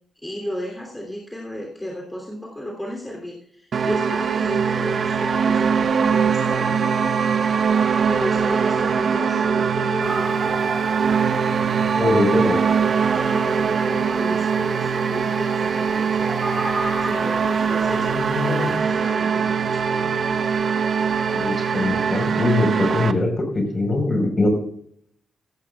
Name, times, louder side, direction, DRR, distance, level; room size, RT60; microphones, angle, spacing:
voice 1, 0.2-7.1 8.0-10.6 13.1-16.4 17.0-18.2 18.5-20.5, equal, 10° left, -1 dB, 3.1 m, -33 dB
sound 1, 3.7-23.1, right 6 dB, 55° right, 0.7 m, -22 dB
sound 2, 10.0-18.8, right 2 dB, 20° right, 4.4 m, -35 dB
voice 2, 11.9-12.6 17.9-18.8 21.3-24.5, left 2 dB, 35° left, 4 dB, 4.5 m, -22 dB
16.0 x 14.0 x 2.4 m, 0.67 s
cardioid pair, 95°, 0 cm